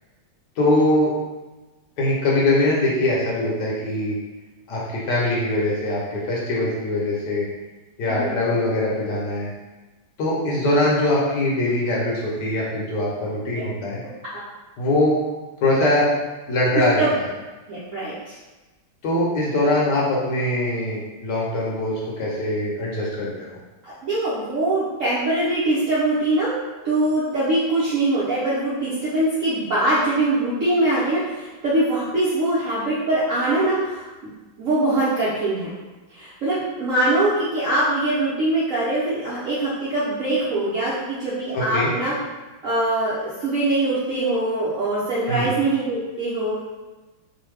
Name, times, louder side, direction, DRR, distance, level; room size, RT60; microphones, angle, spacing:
voice 1, 0.6-1.1 2.0-4.2 4.7-7.5 8.0-9.5 10.2-14.0 14.8-15.2 15.6-16.1 16.5-17.2 19.0-23.6 41.5-41.9 45.3-45.5, left 1 dB, 65° left, -5 dB, 1.2 m, -22 dB
voice 2, 17.7-18.3 23.8-26.5 26.8-34.1 34.6-35.7 36.1-42.1 42.6-46.6, right 2 dB, 70° right, -9 dB, 0.7 m, -22 dB
3.1 x 2.1 x 3.2 m, 1.2 s
omnidirectional pair, 2.1 m